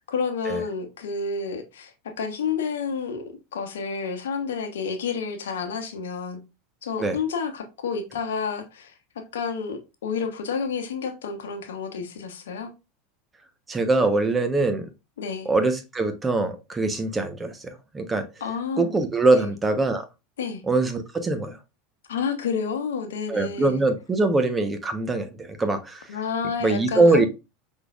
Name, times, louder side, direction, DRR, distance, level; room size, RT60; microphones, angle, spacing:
voice 1, 0.1-3.2 3.5-6.4 6.8-12.7 15.2-15.5 18.4-18.9 19.3-19.5 20.4-20.6 22.1-23.8 26.1-27.3, left 5 dB, 75° left, 0.9 m, -30 dB
voice 2, 13.7-14.9 15.4-18.3 18.8-20.1 20.6-21.6 23.3-26.1 26.6-27.3, right 3 dB, 20° right, 1.0 m, -23 dB
5.7 x 3.7 x 2.4 m
hypercardioid pair, 85°, 0 cm